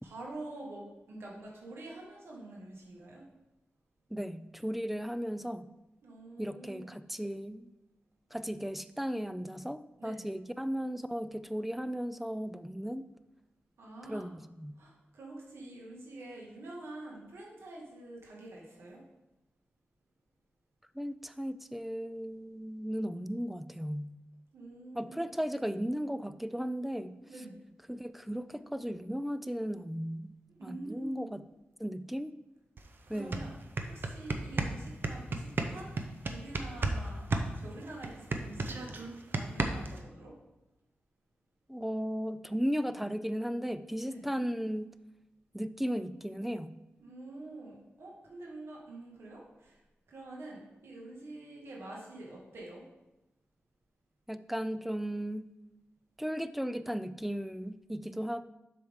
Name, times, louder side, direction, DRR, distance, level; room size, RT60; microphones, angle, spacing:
voice 1, 0.0-3.2 6.0-7.0 10.0-10.2 13.8-14.3 14.8-19.0 24.5-25.3 27.3-27.6 30.6-31.3 33.1-33.6 33.9-35.9 36.3-37.3 37.6-40.3 44.1-44.2 47.0-49.8 50.1-52.8, right 2 dB, 90° right, -3 dB, 1.8 m, -46 dB
voice 2, 4.1-5.7 6.4-7.7 8.3-13.1 14.1-14.7 20.9-24.1 24.9-27.2 27.9-30.3 30.6-31.4 31.8-32.4 33.1-33.5 41.7-44.9 45.5-46.7 54.3-55.4 56.2-58.4, equal, 5° right, 13 dB, 0.3 m, -36 dB
sound 1, 32.8-32.9 33.2-37.0 37.3-40.0, right 3 dB, 55° right, 0.7 m, -32 dB
7.7 x 5.8 x 3.6 m, 0.99 s
wide cardioid pair, 95°, 4 cm